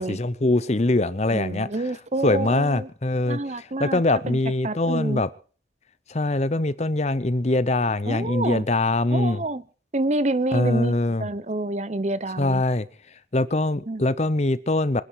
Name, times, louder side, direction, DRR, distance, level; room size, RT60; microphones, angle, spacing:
voice 1, 0.0-1.7 2.2-5.3 6.1-9.4 10.5-11.3 12.4-12.9 13.3-15.0, left 2 dB, 35° left, 0.7 m, -23 dB
voice 2, 1.3-2.9 3.3-4.0 4.3-4.4 4.6-5.2 8.1-8.6 9.1-9.6 9.9-12.6 13.9-14.0, right 2 dB, 35° right, 0.8 m, -28 dB
26.5 x 10.0 x 4.7 m
head